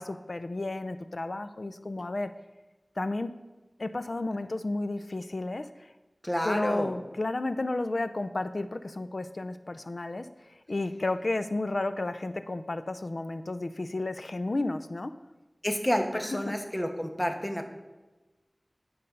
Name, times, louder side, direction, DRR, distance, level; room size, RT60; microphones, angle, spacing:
voice 1, 0.0-2.3 3.0-3.3 3.8-5.9 6.4-15.1 16.1-16.5, left 2 dB, 70° left, 11 dB, 0.5 m, -32 dB
voice 2, 6.2-6.9 15.6-17.7, equal, 20° left, 4 dB, 1.3 m, -29 dB
10.5 x 5.5 x 5.3 m, 1.1 s
wide cardioid pair, 50°, 0 cm